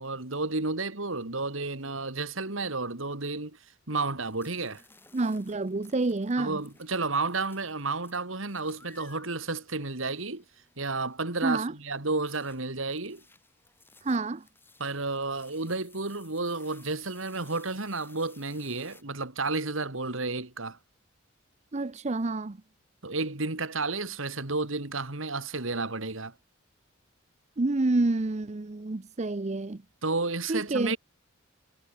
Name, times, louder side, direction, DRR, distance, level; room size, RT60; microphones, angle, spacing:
voice 1, 0.0-3.6 3.9-4.8 6.4-10.4 10.8-13.2 14.8-20.8 23.0-26.3 30.0-31.0, right 3 dB, 70° right, 2.6 m, -31 dB
sound 1, 4.2-11.1 12.3-19.0, left 3 dB, 10° left, 7.6 m, -58 dB
voice 2, 5.1-6.6 11.4-11.7 14.0-14.4 21.7-22.6 27.6-29.8 30.5-31.0, right 2 dB, 35° right, 0.6 m, -28 dB
head